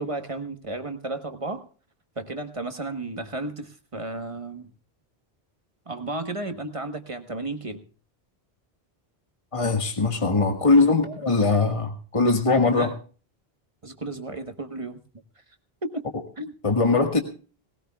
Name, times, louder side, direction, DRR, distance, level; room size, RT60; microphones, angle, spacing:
voice 1, 0.0-1.7 2.2-4.7 5.9-7.8 12.7-13.0 13.8-15.0 15.8-16.1 16.4-16.5, right 2 dB, 30° right, 7 dB, 1.2 m, -33 dB
voice 2, 9.5-12.9 16.6-17.2, left 3 dB, 30° left, 4 dB, 1.7 m, -21 dB
19.5 x 18.0 x 2.3 m, 0.38 s
omnidirectional pair, 1.1 m